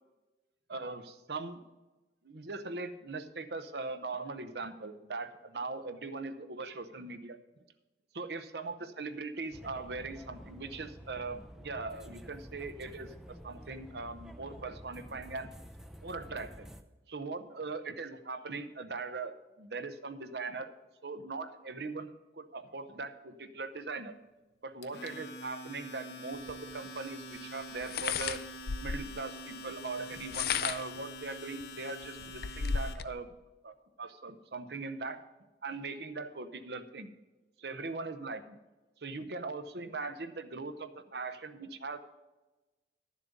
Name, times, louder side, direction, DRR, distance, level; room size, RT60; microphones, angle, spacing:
voice 1, 0.7-1.6 2.2-7.4 8.1-15.5 16.0-16.7 17.1-20.7 21.0-22.1 22.4-24.1 24.6-28.4 28.8-33.3 33.6-35.2 35.6-37.1 37.6-38.4 39.0-42.0, right 3 dB, 65° right, 9 dB, 0.8 m, -40 dB
sound 1, 9.5-16.8, equal, 5° right, 0.4 m, -50 dB
Domestic sounds home sounds, 24.8-32.9, equal, 70° left, 0.9 m, -46 dB
sound 2, 26.5-26.6 27.8-29.2 30.1-31.0 31.6-31.7 32.0-33.1, left 6 dB, 55° left, 0.4 m, -34 dB
11.5 x 7.4 x 5.2 m, 1.1 s
head